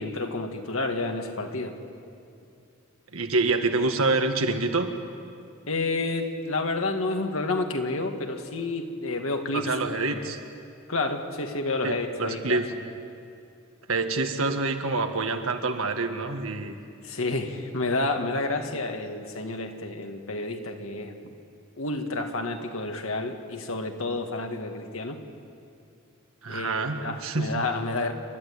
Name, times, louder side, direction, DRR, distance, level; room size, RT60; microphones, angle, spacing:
voice 1, 0.0-1.8 5.7-9.7 10.1-10.3 10.9-12.6 17.0-21.3 21.8-25.2 26.5-28.1, left 2 dB, 80° left, 4 dB, 2.0 m, -30 dB
voice 2, 3.1-4.9 9.5-10.4 11.8-12.6 13.9-16.8 26.4-27.5, right 3 dB, 85° right, 5 dB, 1.8 m, -26 dB
29.0 x 12.5 x 9.7 m, 2.5 s
head